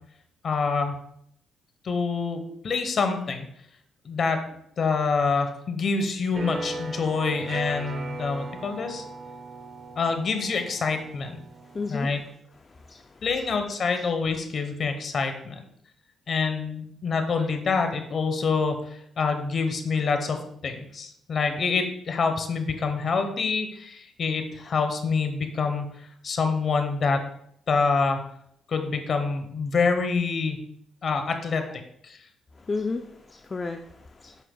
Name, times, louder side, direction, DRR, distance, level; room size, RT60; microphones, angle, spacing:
voice 1, 0.4-1.0 1.8-3.5 4.0-4.4 4.8-9.0 10.0-11.4 11.9-12.2 13.2-15.6 16.3-25.9 26.2-27.2 27.7-28.2 28.7-30.6 31.0-32.2, left 4 dB, 50° left, 6 dB, 1.0 m, -26 dB
sound 1, 6.3-12.0, right 2 dB, 45° right, 0.9 m, -38 dB
voice 2, 11.6-12.1 12.6-13.3 32.5-34.4, left 3 dB, 30° left, 5 dB, 0.4 m, -33 dB
8.1 x 5.7 x 2.3 m, 0.71 s
cardioid pair, 90°, 0 cm